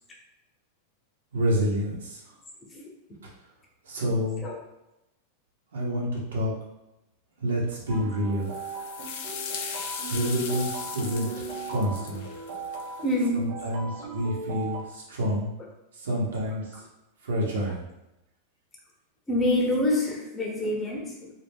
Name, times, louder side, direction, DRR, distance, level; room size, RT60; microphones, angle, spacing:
voice 1, 1.3-2.2 3.8-4.4 5.7-6.5 7.4-8.5 10.1-11.3 11.7-12.2 13.4-15.5 16.0-16.6 17.2-17.8, equal, 90° right, -3 dB, 0.8 m, -28 dB
sound 1, 7.9-14.8, right 3 dB, 60° right, 0.5 m, -38 dB
sound 2, 8.4-13.3, left 7 dB, 65° left, 0.4 m, -38 dB
voice 2, 13.0-13.5 13.8-14.1 19.3-21.3, left 1 dB, 20° left, -1 dB, 0.7 m, -27 dB
2.3 x 2.0 x 3.4 m, 0.91 s
hypercardioid pair, 115°, 0 cm